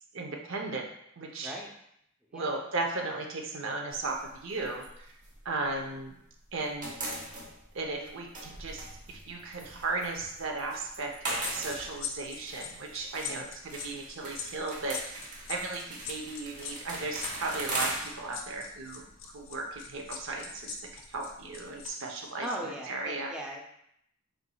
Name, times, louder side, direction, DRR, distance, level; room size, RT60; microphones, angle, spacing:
voice 1, 0.1-0.9 1.2-1.5 2.3-4.9 5.4-6.1 6.5-6.9 7.7-23.3, right 3 dB, 65° right, 2 dB, 0.6 m, -36 dB
voice 2, 1.4-1.7 2.3-2.5 13.1-13.5 22.4-23.6, right 1 dB, 5° right, -3 dB, 0.5 m, -39 dB
sound 1, 3.9-6.2 6.4-21.9, right 2 dB, 40° right, 1.0 m, -41 dB
sound 2, 11.4-21.9 22.2-22.4, left 8 dB, 70° left, 0.6 m, -41 dB
4.6 x 3.9 x 2.3 m, 0.74 s
head